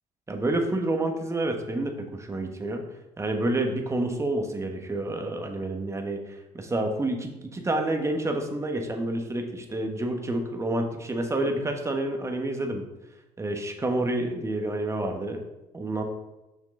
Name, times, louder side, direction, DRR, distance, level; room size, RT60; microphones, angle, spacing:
voice 1, 0.3-2.8 3.2-12.8 13.4-15.4 15.7-16.0, right 2 dB, 20° right, 4 dB, 1.2 m, -29 dB
6.5 x 6.4 x 3.8 m, 0.98 s
cardioid pair, 95°, 15 cm